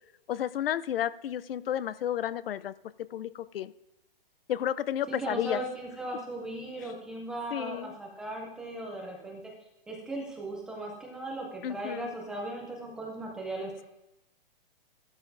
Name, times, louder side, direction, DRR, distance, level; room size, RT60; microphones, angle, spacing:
voice 1, 0.3-2.7 3.1-3.7 4.5-5.6 7.5-8.0 11.6-12.1, left 11 dB, 75° left, 16 dB, 0.6 m, -32 dB
voice 2, 5.1-9.4 9.9-13.8, right 2 dB, 5° right, -1 dB, 0.3 m, -37 dB
14.5 x 12.5 x 2.6 m, 0.91 s
hypercardioid pair, 160°, 29 cm